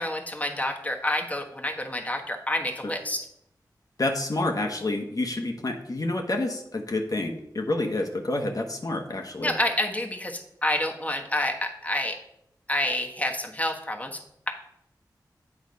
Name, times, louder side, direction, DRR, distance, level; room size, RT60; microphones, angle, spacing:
voice 1, 0.0-3.2 9.4-12.2 12.7-14.2, left 1 dB, 20° left, 2 dB, 1.3 m, -28 dB
voice 2, 4.0-9.5, left 2 dB, 50° left, 3 dB, 1.1 m, -28 dB
8.4 x 4.0 x 5.2 m, 0.79 s
cardioid pair, 45°, 8 cm